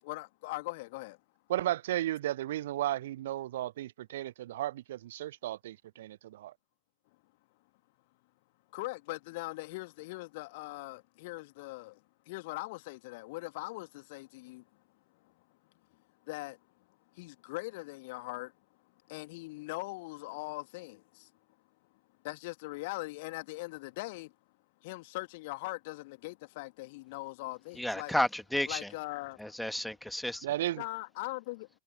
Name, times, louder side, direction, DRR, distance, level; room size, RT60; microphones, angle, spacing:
voice 1, 0.0-1.2 8.7-12.0 12.3-14.6 16.3-16.6 17.1-18.5 19.1-21.3 22.2-24.3 24.8-28.1 28.7-29.5 30.8-31.7, left 22 dB, 50° left, 2.3 m, -41 dB
voice 2, 1.5-6.5 30.4-30.8, right 14 dB, 55° right, 0.5 m, -34 dB
voice 3, 27.7-28.9 29.4-30.5, left 1 dB, ahead, 1.7 m, -32 dB
figure-of-eight pair, 90°, 0 cm